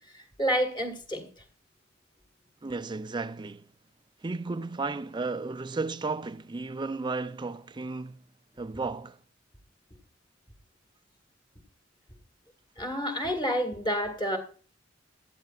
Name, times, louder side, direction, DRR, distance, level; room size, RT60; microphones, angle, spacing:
voice 1, 0.4-1.2 12.8-14.4, equal, 25° left, 2.0 m, -28 dB
voice 2, 2.6-3.7 4.2-8.2 8.6-9.2, right 3 dB, 25° right, 0.4 m, -34 dB
17.0 x 12.5 x 2.5 m
head